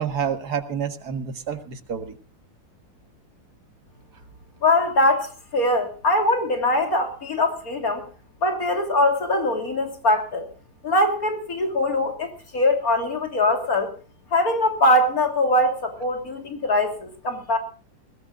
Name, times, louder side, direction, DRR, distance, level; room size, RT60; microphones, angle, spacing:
voice 1, 0.0-2.1, right 7 dB, 75° right, 8 dB, 2.2 m, -28 dB
voice 2, 4.6-8.0 8.4-10.5 10.8-13.9 14.3-17.6, left 1 dB, 60° left, 4 dB, 3.6 m, -22 dB
21.0 x 18.5 x 2.5 m, 0.37 s
omnidirectional pair, 1.7 m